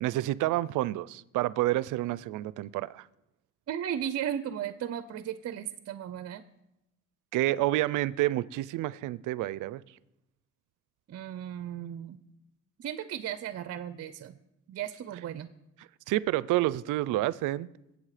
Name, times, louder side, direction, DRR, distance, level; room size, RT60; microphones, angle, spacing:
voice 1, 0.0-3.0 7.3-9.8 16.1-17.7, right 16 dB, 90° right, 0.5 m, -29 dB
voice 2, 3.7-6.4 11.1-12.2 12.8-14.4 14.7-15.5, right 10 dB, 55° right, 0.7 m, -35 dB
21.0 x 8.4 x 5.0 m
cardioid pair, 90°, 30 cm